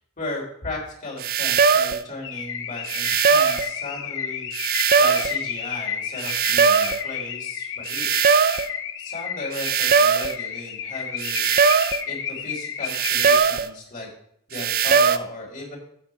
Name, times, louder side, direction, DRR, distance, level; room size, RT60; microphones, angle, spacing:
voice 1, 0.2-8.1 9.0-11.5 12.1-14.1 14.5-15.8, left 2 dB, 40° left, -2 dB, 3.4 m, -36 dB
sound 1, 1.2-2.0 2.9-3.7 4.5-5.4 6.2-7.0 7.9-8.7 9.5-10.4 11.2-12.0 12.9-13.7 14.5-15.2, right 6 dB, 45° right, 0.4 m, -20 dB
Car / Alarm, 2.2-13.4, left 8 dB, 60° left, 0.8 m, -32 dB
7.9 x 7.5 x 4.6 m, 0.70 s
head